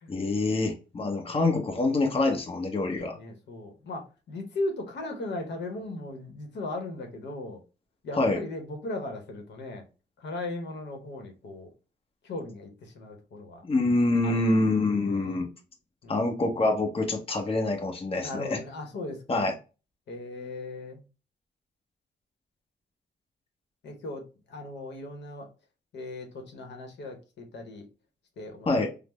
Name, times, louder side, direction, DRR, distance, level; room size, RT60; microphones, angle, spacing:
voice 1, 0.1-3.2 8.2-8.4 13.6-15.5 16.1-18.6 19.3-19.5 28.7-28.9, left 2 dB, 30° left, 3 dB, 0.8 m, -26 dB
voice 2, 3.2-7.6 8.0-9.8 10.2-11.7 12.2-13.6 14.2-14.4 15.0-15.5 16.0-16.3 18.2-19.5 20.1-21.0 23.8-25.5 25.9-27.8 28.4-28.9, left 2 dB, 75° left, 4 dB, 0.9 m, -37 dB
3.3 x 2.0 x 3.0 m, 0.32 s
cardioid pair, 75°, 18 cm